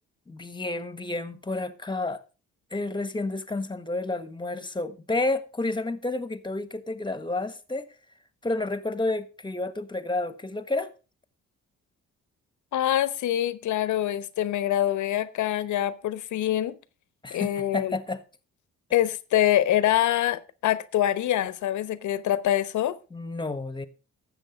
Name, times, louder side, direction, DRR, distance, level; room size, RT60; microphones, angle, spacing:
voice 1, 0.3-2.2 2.7-7.9 8.4-10.9 17.2-18.2 23.1-23.9, left 2 dB, 15° left, 1.3 m, -30 dB
voice 2, 12.7-16.7 17.3-17.9 18.9-23.0, left 12 dB, 75° left, 1.0 m, -25 dB
12.5 x 7.8 x 5.1 m
cardioid pair, 90°, 30 cm